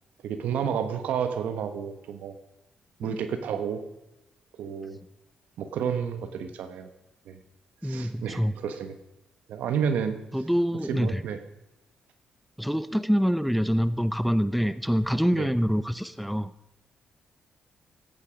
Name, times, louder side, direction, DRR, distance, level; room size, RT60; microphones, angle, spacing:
voice 1, 0.2-2.3 3.0-3.8 4.6-5.0 5.6-6.9 7.3-7.4 7.8-9.0 9.5-10.2 10.9-11.4 15.3-15.5, right 7 dB, 80° right, 9 dB, 1.2 m, -30 dB
voice 2, 7.8-8.5 10.3-11.2 12.6-16.5, equal, ahead, 14 dB, 0.6 m, -25 dB
16.0 x 8.6 x 5.1 m, 0.93 s
supercardioid pair, 65°, 3 cm